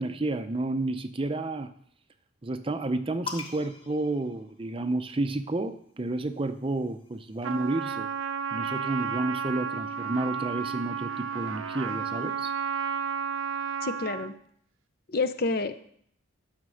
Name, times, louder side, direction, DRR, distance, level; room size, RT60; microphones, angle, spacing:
voice 1, 0.0-1.7 2.4-8.1 8.5-12.5, right 2 dB, 25° right, 10 dB, 0.5 m, -31 dB
sound 1, 3.3-5.1 6.2-7.8, left 5 dB, 25° left, 1.1 m, -43 dB
Trumpet, 7.4-14.4, right 7 dB, 80° right, 0.7 m, -32 dB
voice 2, 13.8-14.3 15.1-15.8, left 3 dB, 45° left, 11 dB, 0.7 m, -28 dB
11.0 x 6.6 x 6.3 m, 0.65 s
head